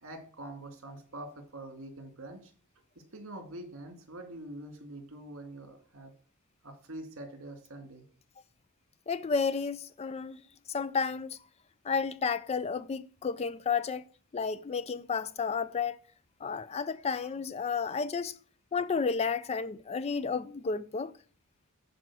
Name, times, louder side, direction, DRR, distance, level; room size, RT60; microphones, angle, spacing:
voice 1, 0.0-2.5 3.1-6.1 6.6-8.0, right 1 dB, 60° right, 2.4 m, -45 dB
voice 2, 9.1-10.4 10.7-11.4 11.8-14.1 14.3-16.0 16.4-18.4 18.7-21.1, left 5 dB, 30° left, 0.3 m, -32 dB
11.0 x 4.8 x 6.1 m
head